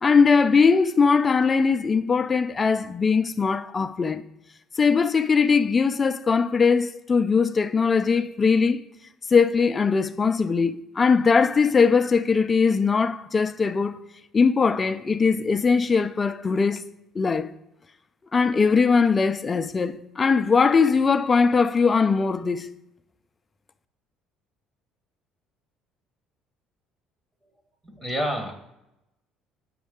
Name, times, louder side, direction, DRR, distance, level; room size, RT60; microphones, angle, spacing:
voice 1, 0.0-4.2 4.8-8.8 9.3-14.0 14.3-16.8 17.2-17.5 18.3-22.7, left 5 dB, 25° left, 0.4 m, -20 dB
voice 2, 27.8-28.6, equal, 15° right, 1.2 m, -29 dB
8.6 x 6.2 x 3.7 m
cardioid pair, 120°, 0 cm